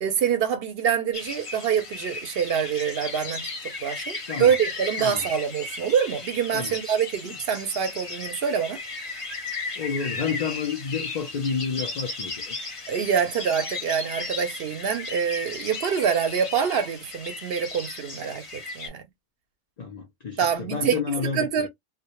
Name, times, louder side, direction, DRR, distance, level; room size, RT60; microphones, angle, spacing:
voice 1, 0.0-3.5 3.8-8.8 12.9-19.0 20.4-21.7, right 7 dB, 65° right, 0.7 m, -25 dB
sound 1, 1.1-18.9, left 3 dB, 35° left, 0.6 m, -35 dB
voice 2, 9.8-12.6 19.8-21.7, left 5 dB, 75° left, 0.3 m, -30 dB
2.2 x 2.0 x 2.8 m
omnidirectional pair, 1.3 m